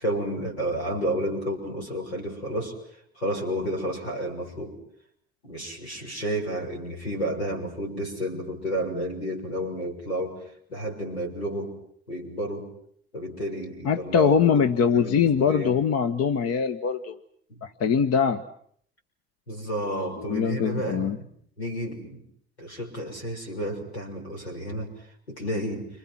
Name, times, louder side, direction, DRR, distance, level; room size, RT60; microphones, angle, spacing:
voice 1, 0.0-2.8 3.2-4.8 5.4-10.4 10.7-11.7 12.1-12.7 13.1-14.6 14.9-15.8 17.5-17.6 19.5-21.3 21.6-22.2 22.6-24.9 25.3-25.9, right 1 dB, 90° left, 0 dB, 6.7 m, -31 dB
voice 2, 13.8-17.2 17.6-18.4 20.2-21.2, left 7 dB, 50° left, 10 dB, 1.4 m, -23 dB
30.0 x 27.0 x 6.1 m, 0.65 s
figure-of-eight pair, 55°, 31 cm